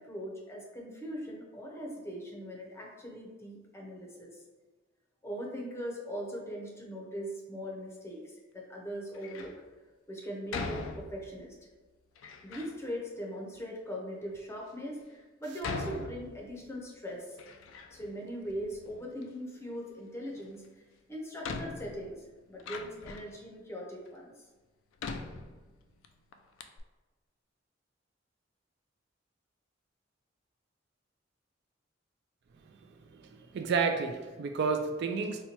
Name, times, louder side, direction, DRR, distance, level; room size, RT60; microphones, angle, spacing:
voice 1, 0.0-4.4 5.2-9.5 10.1-11.5 12.4-17.4 17.9-20.6 21.1-24.3, equal, 15° left, -1 dB, 0.6 m, -40 dB
Door, 9.1-9.6 10.5-11.5 12.1-12.8 13.5-13.6 14.3-14.4 15.6-16.8 17.1-18.2 18.4-19.3 20.6-20.7 21.4-23.4 24.0-24.1 25.0-26.1 26.3-26.4 26.6-26.8, left 4 dB, 80° left, 0.3 m, -41 dB
voice 2, 33.1-35.4, right 5 dB, 60° right, 5 dB, 0.3 m, -31 dB
4.2 x 2.2 x 2.9 m, 1.3 s
head